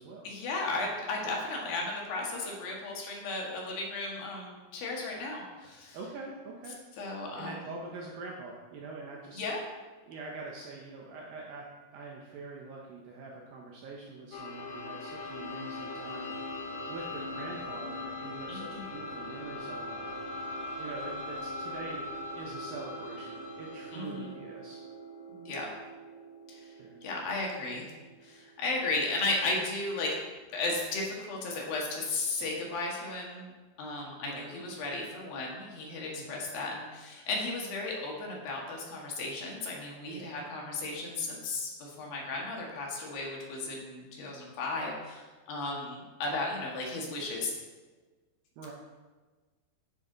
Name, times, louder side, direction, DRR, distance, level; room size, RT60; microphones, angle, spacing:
voice 1, 0.2-6.0 7.0-7.7 9.3-9.6 18.5-18.9 23.9-24.3 25.3-25.7 26.5-26.7 27.0-27.9 28.2-30.2 30.5-33.5 33.8-47.5, left 2 dB, 65° left, -2 dB, 3.4 m, -35 dB
voice 2, 5.9-6.8 7.4-9.5 10.1-11.7 11.9-16.4 16.9-20.2 20.8-24.8 26.8-27.2 34.2-34.5 36.2-36.3 40.1-40.3 48.6-48.7, right 3 dB, 70° right, -2 dB, 2.5 m, -44 dB
sound 1, 14.3-29.9, left 1 dB, 90° left, 3.8 m, -41 dB
9.8 x 9.6 x 4.0 m, 1.3 s
omnidirectional pair, 4.8 m